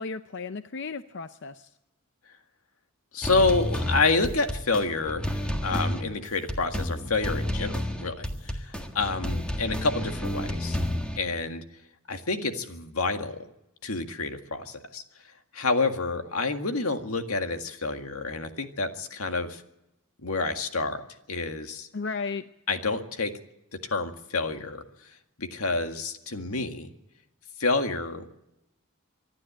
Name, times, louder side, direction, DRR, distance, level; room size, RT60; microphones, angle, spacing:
voice 1, 0.0-1.7 21.9-22.4, left 4 dB, 55° left, 10 dB, 0.6 m, -34 dB
voice 2, 3.1-10.8 11.2-11.6 12.1-13.4 13.8-15.0 15.5-19.6 20.2-21.0 21.3-21.9 22.7-23.3 23.8-24.8 25.4-26.9 27.6-28.2, left 3 dB, 90° left, 6 dB, 1.9 m, -28 dB
sound 1, 3.2-11.2, left 1 dB, 5° left, 1.7 m, -30 dB
25.5 x 11.5 x 8.9 m, 0.88 s
head